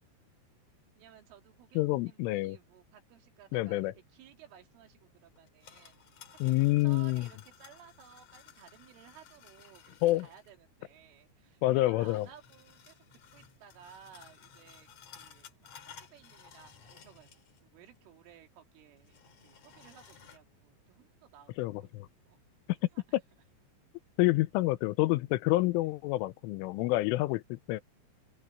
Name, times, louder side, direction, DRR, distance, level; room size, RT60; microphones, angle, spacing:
voice 1, 1.0-6.0 6.3-13.0 13.3-15.5 15.8-21.9 22.3-22.4 22.9-23.0, right 9 dB, 80° right, 5.1 m, -57 dB
voice 2, 1.8-2.6 3.5-3.9 6.4-7.3 10.0-10.3 11.6-12.3 21.6-22.1 24.2-27.8, left 18 dB, 90° left, 3.3 m, -28 dB
sound 1, 5.4-10.5 12.0-17.7 18.0-18.1 19.0-20.4, left 8 dB, 45° left, 2.7 m, -56 dB
open air
omnidirectional pair, 5.6 m